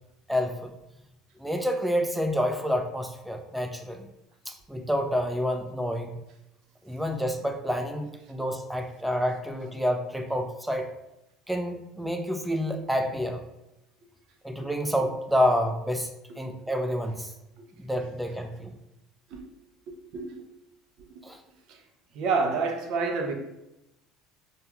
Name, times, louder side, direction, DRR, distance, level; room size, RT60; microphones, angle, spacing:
voice 1, 0.3-0.7 1.4-4.1 4.5-6.2 6.8-10.9 11.5-13.4 14.4-16.1 16.4-17.3 17.8-18.7 21.2-21.4, equal, 5° right, 5 dB, 0.3 m, -28 dB
voice 2, 22.1-23.3, right 4 dB, 65° right, 4 dB, 0.4 m, -27 dB
2.3 x 2.2 x 2.9 m, 0.90 s
supercardioid pair, 105°, 0 cm